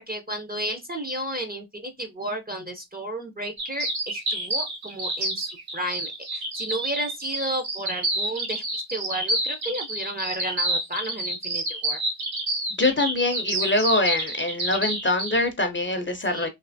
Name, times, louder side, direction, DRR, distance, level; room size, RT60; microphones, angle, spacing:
voice 1, 0.1-12.0 16.3-16.5, right 1 dB, 20° right, 0.5 m, -33 dB
sound 1, 3.6-15.4, right 1 dB, 75° right, 1.6 m, -28 dB
voice 2, 12.8-16.5, left 2 dB, 25° left, 0.5 m, -24 dB
3.2 x 2.8 x 2.6 m
wide cardioid pair, 105°, 47 cm